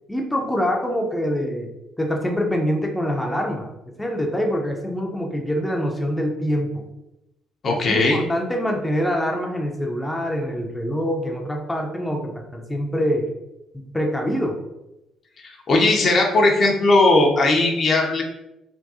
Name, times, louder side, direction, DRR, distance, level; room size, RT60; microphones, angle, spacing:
voice 1, 0.1-1.7 2.0-3.7 4.0-6.8 7.7-13.3 13.9-14.6, equal, 10° left, 1 dB, 0.6 m, -25 dB
voice 2, 7.6-8.2 15.4-18.2, left 2 dB, 50° left, 0 dB, 0.6 m, -18 dB
3.5 x 2.2 x 2.7 m, 0.93 s
hypercardioid pair, 55°, 0 cm